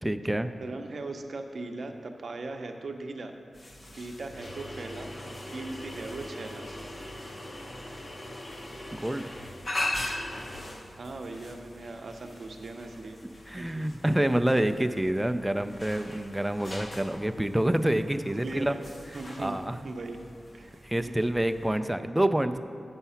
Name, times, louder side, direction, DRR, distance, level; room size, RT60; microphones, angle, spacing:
voice 1, 0.0-0.5 8.9-9.3 13.5-18.8 19.4-19.8 20.8-22.6, right 1 dB, 10° right, 9 dB, 0.3 m, -27 dB
voice 2, 0.6-3.3 3.9-5.1 5.5-6.6 10.9-13.2 13.6-13.8 18.4-18.8 19.1-19.6 19.8-20.2 20.5-21.2, right 2 dB, 60° right, 4 dB, 0.6 m, -39 dB
sound 1, 3.5-21.8, left 1 dB, 35° left, 0.7 m, -41 dB
8.1 x 5.6 x 5.6 m, 2.3 s
wide cardioid pair, 120°, 0 cm